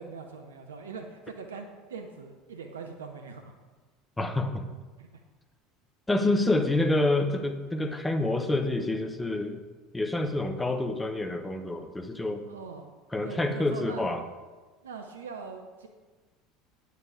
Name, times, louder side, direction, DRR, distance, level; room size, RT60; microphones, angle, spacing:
voice 1, 0.0-3.5 5.0-5.1 12.5-13.0 13.2-14.1 14.8-15.9, right 5 dB, 80° right, 4 dB, 0.7 m, -42 dB
voice 2, 4.2-4.6 6.1-9.6 9.9-12.5 13.1-14.2, left 2 dB, 10° left, 6 dB, 1.0 m, -27 dB
8.8 x 6.8 x 4.9 m, 1.3 s
figure-of-eight pair, 70°, 0 cm